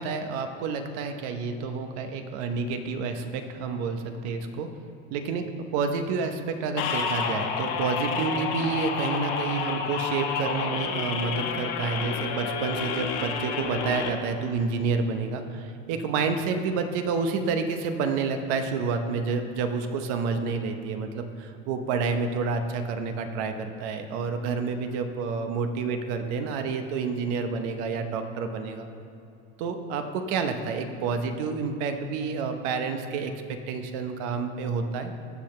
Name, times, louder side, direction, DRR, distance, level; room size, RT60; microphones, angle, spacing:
voice 1, 0.0-4.7 5.1-5.4 5.7-28.8 29.6-33.3 33.7-35.1, right 5 dB, 75° right, 7 dB, 0.9 m, -29 dB
sound 1, 6.8-14.1, left 6 dB, 75° left, 1.2 m, -30 dB
15.5 x 5.9 x 3.2 m, 2.7 s
supercardioid pair, 110°, 34 cm